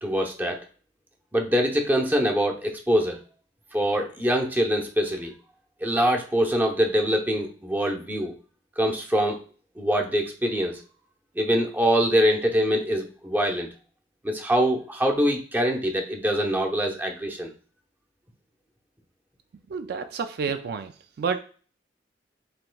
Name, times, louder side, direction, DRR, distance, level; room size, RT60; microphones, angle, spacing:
voice 1, 0.0-0.6 1.3-3.2 3.7-5.3 5.8-8.3 8.8-9.4 9.8-10.8 11.4-13.7 14.2-17.5, equal, 10° right, 1 dB, 0.7 m, -24 dB
voice 2, 19.7-20.9 21.2-21.4, right 5 dB, 60° right, 9 dB, 0.3 m, -29 dB
7.7 x 2.9 x 2.3 m, 0.40 s
head